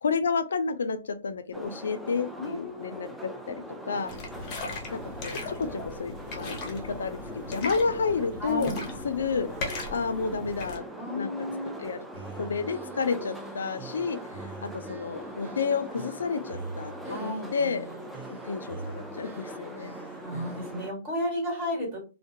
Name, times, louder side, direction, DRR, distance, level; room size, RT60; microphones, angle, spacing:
voice 1, 0.0-4.1 4.9-7.2 7.5-8.7 9.0-9.5 9.9-10.8 11.1-11.3 11.8-12.1 12.4-14.2 14.6-17.9 18.3-19.9, left 5 dB, 75° left, 10 dB, 0.3 m, -30 dB
sound 1, 1.5-20.9, equal, 5° right, 0.3 m, -41 dB
voice 2, 2.4-3.0 8.4-8.9 10.9-11.7 17.1-17.5 20.2-22.0, left 1 dB, 35° right, 0 dB, 1.4 m, -33 dB
sound 2, 4.1-10.8, left 3 dB, 30° left, 0.7 m, -38 dB
sound 3, 12.1-20.8, right 4 dB, 50° right, 0.9 m, -45 dB
2.3 x 2.1 x 2.6 m, 0.34 s
hypercardioid pair, 130°, 0 cm